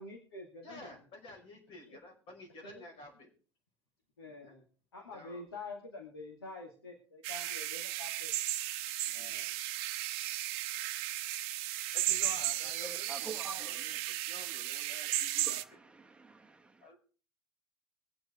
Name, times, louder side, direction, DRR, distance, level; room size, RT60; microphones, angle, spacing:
voice 1, 0.0-1.0 1.9-2.0 2.6-2.8 4.2-4.6 4.9-8.3 9.2-9.3, left 3 dB, 80° left, 2.4 m, -47 dB
voice 2, 0.6-3.3 4.4-4.6 5.1-5.4 9.1-9.5 11.9-15.8 16.8-17.0, left 1 dB, 45° left, 5.4 m, -51 dB
sound 1, 7.2-15.6, right 14 dB, 50° right, 0.8 m, -35 dB
voice 3, 12.8-13.8 15.4-16.8, right 4 dB, 10° right, 1.2 m, -47 dB
23.0 x 7.8 x 3.7 m
figure-of-eight pair, 75°, 13 cm